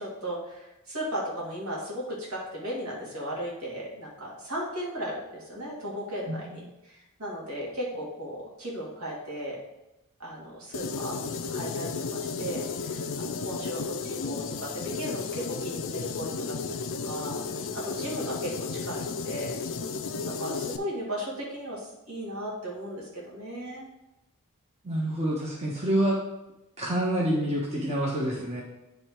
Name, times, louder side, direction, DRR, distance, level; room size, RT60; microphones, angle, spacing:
voice 1, 0.0-9.6 10.2-11.2 11.5-16.6 17.0-23.9, equal, 70° right, -4 dB, 2.3 m, -36 dB
voice 2, 6.3-6.6 24.8-26.2 26.8-28.6, right 1 dB, 30° right, -5 dB, 1.2 m, -27 dB
sound 1, 10.7-20.8, left 4 dB, 60° left, 0.5 m, -33 dB
9.7 x 3.4 x 4.5 m, 0.95 s
head